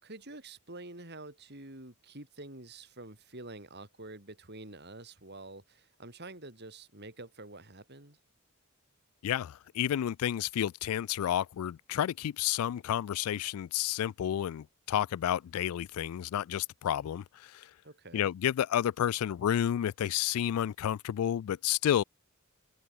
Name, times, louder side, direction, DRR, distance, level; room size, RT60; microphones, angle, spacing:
voice 1, 0.0-8.2 17.8-18.3, right 2 dB, 50° right, 5.1 m, -47 dB
voice 2, 9.2-17.7 18.1-22.0, left 10 dB, 80° left, 0.3 m, -31 dB
head